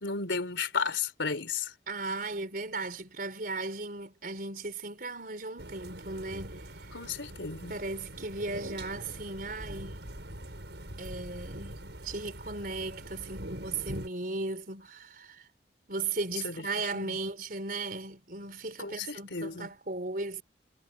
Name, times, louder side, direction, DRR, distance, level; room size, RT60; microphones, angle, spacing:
voice 1, 0.0-1.7 6.9-7.7 16.4-16.5 16.9-17.1 18.8-19.7, left 5 dB, 85° left, 3.4 m, -33 dB
voice 2, 1.9-7.0 7.7-10.0 11.0-15.5 15.9-20.4, right 3 dB, 50° right, 4.6 m, -37 dB
sound 1, 5.6-14.1, right 1 dB, 70° right, 6.6 m, -43 dB
head